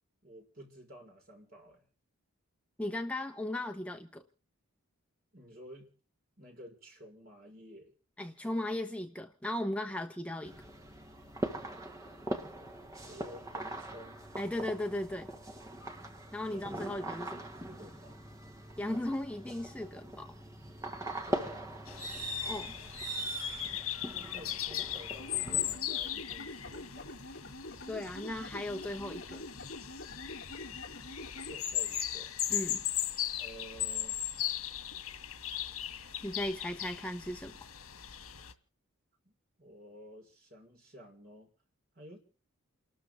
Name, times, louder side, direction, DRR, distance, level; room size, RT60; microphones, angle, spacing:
voice 1, 0.2-1.8 5.3-5.9 6.4-7.9 13.0-14.3 16.4-17.0 17.3-18.2 21.1-21.8 24.0-27.2 31.5-32.3 33.4-34.2 39.6-41.5 42.0-42.2, equal, 45° right, 5.4 m, -52 dB
voice 2, 2.8-4.2 8.2-10.5 14.4-15.3 16.3-17.5 18.8-20.3 22.4-22.7 27.9-29.4 32.5-32.8 36.2-37.6, left 1 dB, 5° left, 1.0 m, -37 dB
sound 1, 10.4-25.8, right 1 dB, 15° right, 1.5 m, -41 dB
sound 2, 21.9-38.5, left 11 dB, 85° left, 1.9 m, -38 dB
sound 3, 25.2-31.5, left 1 dB, 50° left, 3.5 m, -46 dB
29.5 x 13.0 x 3.7 m
head